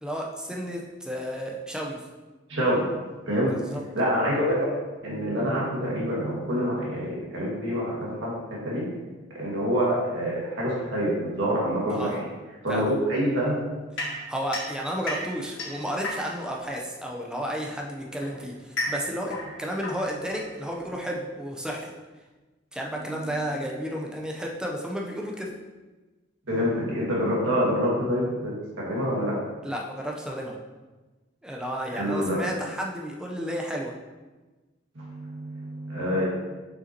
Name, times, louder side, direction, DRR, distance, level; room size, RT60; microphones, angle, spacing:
voice 1, 0.0-2.0 3.5-3.8 11.9-12.2 12.7-12.9 14.3-21.9 22.7-25.5 29.6-30.5 31.4-33.9, equal, 5° right, -1 dB, 0.7 m, -32 dB
voice 2, 2.5-2.8 3.3-3.5 3.9-4.7 5.0-8.4 8.6-8.8 9.3-12.2 12.6-13.6 26.5-29.4 31.9-32.5 35.0-36.2, equal, 75° right, -5 dB, 1.9 m, -26 dB
sound 1, 14.0-16.6 17.6-21.0, left 1 dB, 90° left, 1.5 m, -35 dB
6.8 x 5.5 x 2.9 m, 1.2 s
head